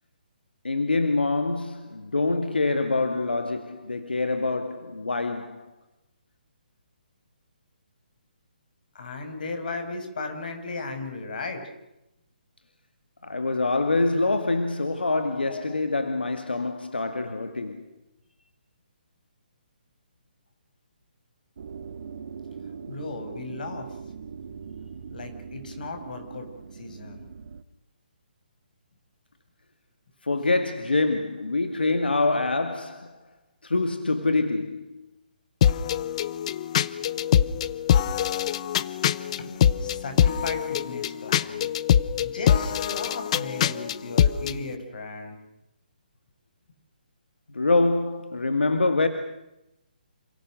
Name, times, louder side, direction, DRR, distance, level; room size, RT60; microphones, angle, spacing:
voice 1, 0.6-5.7 13.2-17.8 30.2-33.2 33.6-35.0 47.5-49.1, left 3 dB, 85° left, 2.3 m, -25 dB
voice 2, 8.9-11.7 15.5-15.8 22.9-24.0 25.1-27.2 39.3-41.7 42.2-45.4, left 3 dB, 60° left, 6.7 m, -36 dB
sound 1, 21.6-27.6, right 6 dB, 60° right, 2.0 m, -41 dB
sound 2, 35.6-44.6, left 9 dB, 40° left, 1.0 m, -24 dB
28.5 x 27.5 x 6.6 m
figure-of-eight pair, 145°, 5 cm